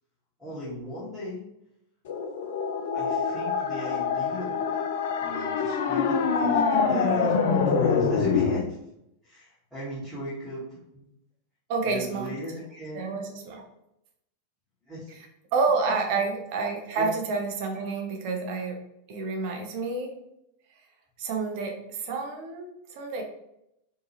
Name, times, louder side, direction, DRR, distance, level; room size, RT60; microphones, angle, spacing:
voice 1, 0.4-1.5 2.9-4.7 5.2-8.8 9.2-11.0 11.8-13.1 14.8-15.2 15.9-16.0 17.0-17.1, left 1 dB, ahead, -11 dB, 1.0 m, -38 dB
sound 1, 2.1-8.6, left 5 dB, 55° left, 0.3 m, -25 dB
voice 2, 11.7-12.3 12.9-13.7 15.5-18.8 19.1-20.2 21.2-23.2, right 4 dB, 45° right, 4 dB, 0.5 m, -29 dB
2.8 x 2.3 x 2.7 m, 0.81 s
figure-of-eight pair, 90°, 0 cm